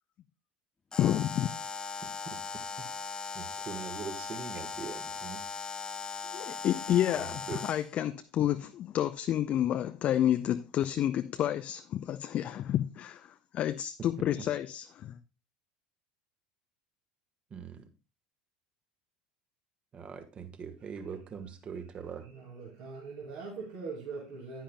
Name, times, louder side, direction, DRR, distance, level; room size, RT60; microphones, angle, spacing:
Alarm, 0.9-7.9, left 5 dB, 20° left, 0.8 m, -39 dB
voice 1, 1.0-1.5 6.3-13.3 13.5-15.2, left 11 dB, 40° left, 0.5 m, -30 dB
voice 2, 2.2-2.9 3.3-5.4 7.1-7.6 17.5-17.8 19.9-22.2, right 6 dB, 35° right, 1.5 m, -42 dB
voice 3, 22.2-24.6, right 4 dB, 60° right, 2.5 m, -42 dB
10.0 x 10.0 x 2.2 m
figure-of-eight pair, 70°, 3 cm